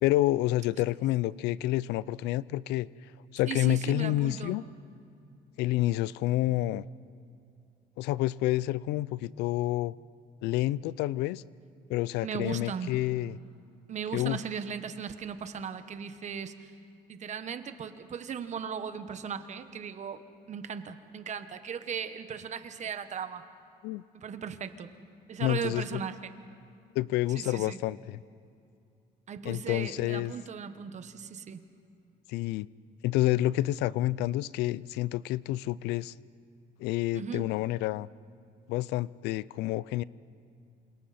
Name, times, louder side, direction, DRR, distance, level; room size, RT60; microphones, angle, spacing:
voice 1, 0.0-2.9 3.3-4.6 5.6-6.8 8.0-9.9 10.4-11.4 11.9-13.4 14.1-14.4 23.8-24.0 25.4-26.0 27.0-28.2 29.4-30.3 32.3-32.7 33.0-36.1 36.8-38.1 38.7-40.0, left 15 dB, 90° left, 21 dB, 0.4 m, -28 dB
voice 2, 3.5-4.6 12.2-12.9 13.9-16.7 17.1-20.2 20.5-23.4 24.1-24.9 25.3-26.3 27.3-27.8 29.3-31.6 37.1-37.5, right 7 dB, 45° right, 10 dB, 1.3 m, -37 dB
28.0 x 26.5 x 4.3 m, 2.5 s
cardioid pair, 110°, 17 cm